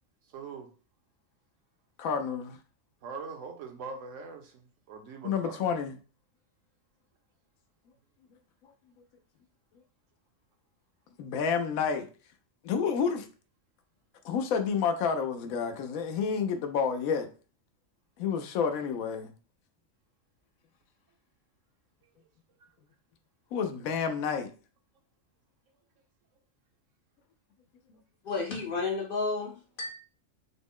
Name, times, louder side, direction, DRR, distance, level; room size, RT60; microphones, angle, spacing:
voice 1, 0.3-0.7 3.0-5.7, right 5 dB, 70° right, 1.0 m, -42 dB
voice 2, 2.0-2.6 5.2-6.0 11.2-12.1 12.6-13.3 14.2-17.3 18.2-19.3 23.5-24.5, left 6 dB, 85° left, 1.0 m, -29 dB
voice 3, 28.2-29.9, left 3 dB, 55° left, 0.6 m, -32 dB
3.9 x 2.0 x 3.6 m
omnidirectional pair, 1.4 m